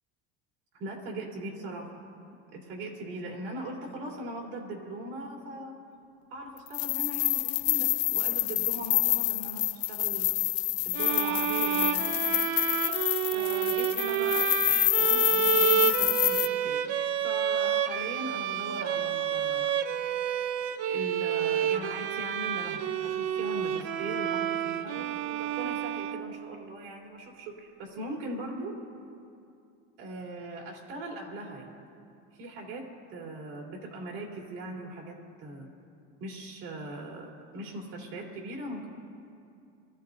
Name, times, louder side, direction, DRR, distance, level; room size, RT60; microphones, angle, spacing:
voice 1, 0.7-2.0 2.5-5.8 6.3-10.3 10.8-12.1 13.3-16.8 17.2-19.8 20.9-28.8 30.0-31.8 32.4-35.7 36.2-38.9, right 2 dB, 70° right, -2 dB, 3.7 m, -40 dB
sound 1, 6.7-16.5, left 20 dB, 45° left, 0.4 m, -27 dB
sound 2, 10.9-26.6, right 9 dB, 50° right, 0.6 m, -29 dB
24.5 x 14.5 x 2.7 m, 2.5 s
supercardioid pair, 145°, 32 cm